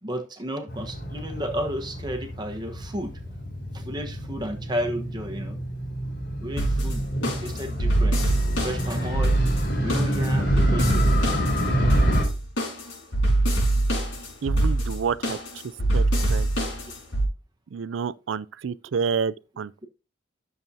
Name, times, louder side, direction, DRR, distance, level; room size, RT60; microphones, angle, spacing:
voice 1, 0.0-3.2 3.7-5.6 6.4-7.0 7.4-8.2 8.6-9.3 9.8-11.2, equal, 20° right, 1.1 m, -32 dB
Motorcycle, 0.7-12.2, equal, 55° left, 3.7 m, -28 dB
sound 1, 6.6-17.3, right 1 dB, 80° left, 5.0 m, -24 dB
voice 2, 14.4-15.4 15.9-16.0 16.3-16.5 17.7-19.9, right 6 dB, 75° right, 0.4 m, -29 dB
12.0 x 7.0 x 2.7 m
head